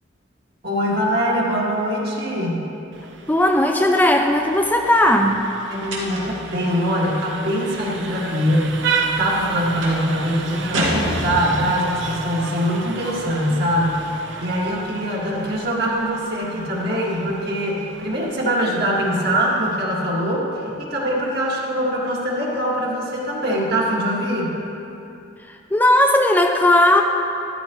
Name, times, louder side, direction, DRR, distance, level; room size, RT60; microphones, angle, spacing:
voice 1, 0.6-2.7 5.7-24.6, equal, 55° right, -4 dB, 2.0 m, -23 dB
Vehicle horn car horn honking, 2.9-19.7, right 4 dB, 75° right, 0.8 m, -33 dB
voice 2, 3.3-5.5 25.4-27.0, left 1 dB, 10° left, 3 dB, 0.4 m, -17 dB
sound 1, 5.9-6.5 9.8-10.1 10.7-11.8, right 1 dB, 90° right, 2.0 m, -26 dB
13.0 x 12.0 x 3.1 m, 2.8 s
head